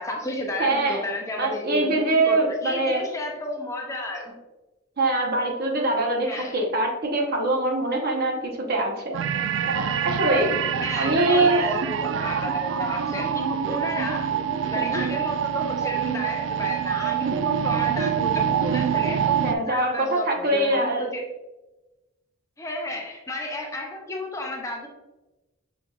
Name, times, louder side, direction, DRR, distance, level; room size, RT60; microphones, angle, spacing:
voice 1, 0.0-4.4 6.2-6.6 10.7-14.3 14.6-21.3 22.6-24.9, left 1 dB, 15° left, 1 dB, 0.5 m, -32 dB
voice 2, 0.6-1.0 1.4-3.0 5.0-9.2 9.7-10.6 11.0-11.7 14.7-15.0 19.4-21.0, right 2 dB, 50° right, 0 dB, 0.9 m, -23 dB
sound 1, 9.1-19.5, right 8 dB, 65° right, 0.3 m, -25 dB
5.8 x 3.9 x 2.3 m, 1.1 s
head